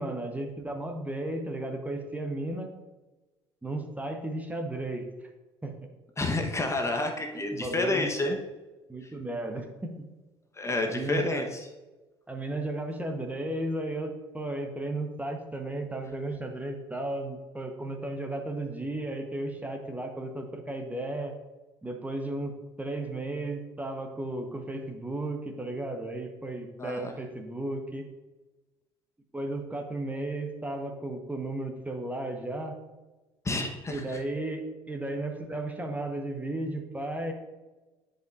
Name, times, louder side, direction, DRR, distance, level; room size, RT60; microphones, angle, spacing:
voice 1, 0.0-2.7 3.6-5.0 5.6-5.7 7.3-8.1 8.9-10.1 10.9-11.4 12.3-21.3 21.8-22.5 22.8-28.1 29.3-32.8 33.9-37.3, right 2 dB, 10° right, 3 dB, 1.0 m, -34 dB
voice 2, 6.2-8.4 9.0-9.1 10.5-11.7 26.8-27.1 33.4-34.2, left 2 dB, 20° left, 4 dB, 1.0 m, -29 dB
10.5 x 5.2 x 2.5 m, 1.2 s
figure-of-eight pair, 60°, 13 cm